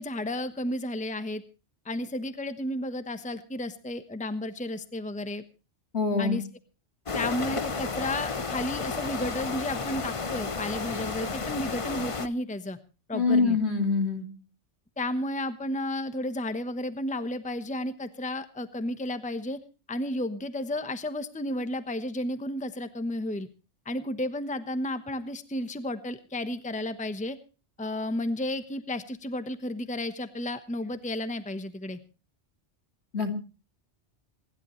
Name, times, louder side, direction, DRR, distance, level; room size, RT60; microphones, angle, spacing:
voice 1, 0.0-1.4 1.8-5.4 6.2-6.4 7.1-12.8 13.1-13.6 15.0-19.6 19.9-23.5 23.8-27.4 27.8-32.0, left 1 dB, 5° left, 11 dB, 1.0 m, -32 dB
voice 2, 5.9-6.4 13.1-14.3 33.1-33.4, left 4 dB, 65° left, 4 dB, 3.1 m, -25 dB
sound 1, 7.1-12.3, left 4 dB, 30° left, 0.8 m, -32 dB
27.0 x 11.5 x 3.1 m, 0.34 s
omnidirectional pair, 1.2 m